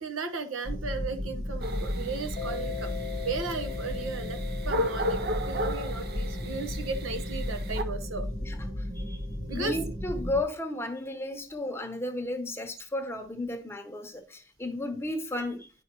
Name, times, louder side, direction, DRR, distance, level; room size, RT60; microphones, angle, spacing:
voice 1, 0.0-2.9 3.2-4.4 4.6-8.3 9.5-9.7, right 4 dB, 90° right, 1.0 m, -35 dB
Drone Loop, 0.6-10.4, left 1 dB, 30° right, 1.2 m, -34 dB
sound 1, 1.6-7.8, equal, 50° right, 0.6 m, -35 dB
Mallet percussion, 2.4-8.7, left 11 dB, 45° left, 0.5 m, -42 dB
voice 2, 8.4-9.3 9.5-15.7, left 1 dB, 10° left, 0.8 m, -34 dB
9.9 x 5.1 x 3.0 m
head